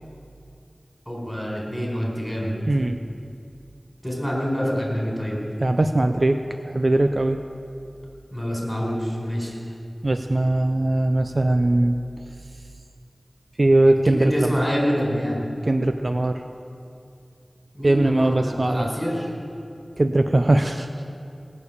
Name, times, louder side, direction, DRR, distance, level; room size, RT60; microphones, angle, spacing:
voice 1, 1.1-2.5 4.0-5.4 8.3-9.6 14.1-15.4 17.7-19.3, equal, 5° left, -3 dB, 4.4 m, -26 dB
voice 2, 2.7-3.0 5.6-6.4 6.7-7.4 10.0-12.0 13.6-14.6 15.7-16.4 17.8-18.9 20.0-20.9, right 2 dB, 50° right, 7 dB, 0.5 m, -20 dB
18.5 x 6.7 x 8.5 m, 2.5 s
wide cardioid pair, 65°, 0 cm